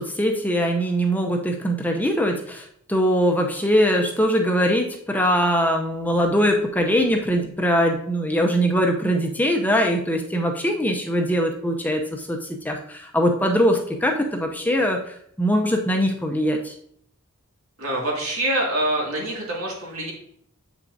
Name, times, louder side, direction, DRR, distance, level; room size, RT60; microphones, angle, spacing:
voice 1, 0.0-12.4 12.6-15.0 15.4-16.7, equal, 10° left, 2 dB, 0.6 m, -22 dB
voice 2, 17.8-20.1, right 1 dB, 80° right, -2 dB, 2.2 m, -25 dB
8.0 x 5.8 x 2.6 m, 0.66 s
head